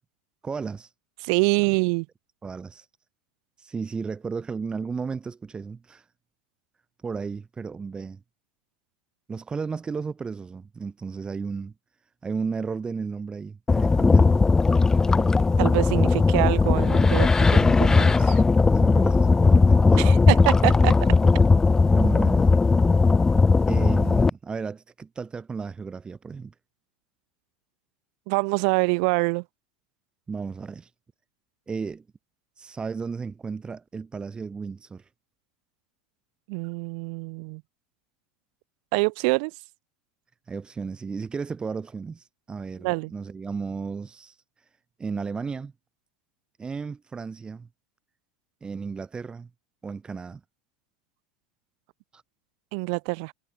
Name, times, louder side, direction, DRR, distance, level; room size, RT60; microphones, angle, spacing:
voice 1, 0.4-0.9 1.6-1.7 2.4-2.9 3.6-6.0 7.0-8.2 9.3-11.7 12.2-14.4 18.7-20.0 21.9-22.5 23.7-26.5 30.3-30.9 31.7-32.0 32.6-35.0 40.5-44.4 45.0-45.7 46.6-47.7 48.6-49.5 49.8-50.4 52.1-52.2, right 5 dB, 20° right, 2.2 m, -34 dB
voice 2, 1.2-2.1 15.6-18.4 20.0-21.0 28.3-29.4 36.5-37.6 38.9-39.5 42.8-43.1 52.7-53.3, right 36 dB, 60° right, 3.5 m, -25 dB
sound 1, 13.7-24.3, left 4 dB, 15° left, 0.3 m, -18 dB
hypercardioid pair, 80°, 4 cm